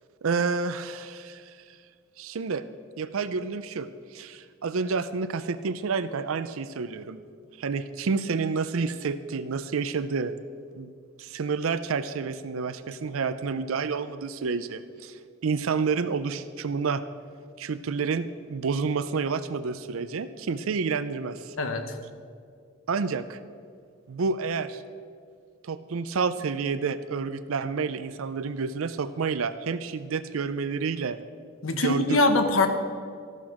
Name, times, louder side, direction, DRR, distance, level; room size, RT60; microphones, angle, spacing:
voice 1, 0.2-1.6 2.2-2.6 3.0-7.2 7.6-10.3 10.8-10.9 11.2-17.0 17.6-21.6 22.9-23.4 24.1-24.8 25.6-31.2 31.7-32.2, right 5 dB, 80° right, 13 dB, 0.5 m, -29 dB
voice 2, 21.6-22.0 31.6-32.7, left 2 dB, 70° left, 7 dB, 1.1 m, -23 dB
13.5 x 12.0 x 4.9 m, 2.2 s
head